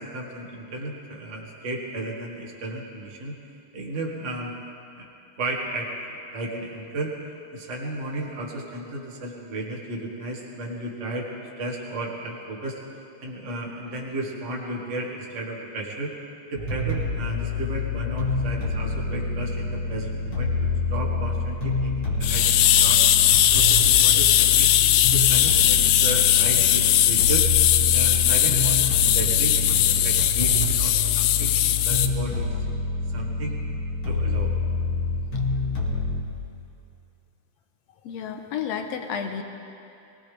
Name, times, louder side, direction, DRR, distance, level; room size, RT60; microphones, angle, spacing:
voice 1, 0.0-3.3 3.7-4.5 4.9-5.1 5.4-5.9 6.3-7.1 7.5-11.3 11.6-12.8 13.2-16.1 16.5-23.0 23.5-24.7 25.1-27.4 27.9-32.4 33.1-33.6 34.0-34.5, right 1 dB, 30° right, -2 dB, 1.7 m, -33 dB
sound 1, 16.6-36.2, left 3 dB, 40° left, 2.8 m, -27 dB
sound 2, 22.2-32.1, left 12 dB, 90° left, 1.5 m, -19 dB
voice 2, 38.0-39.4, left 7 dB, 70° left, 5 dB, 1.9 m, -31 dB
23.0 x 18.5 x 3.4 m, 2.7 s
omnidirectional pair, 3.6 m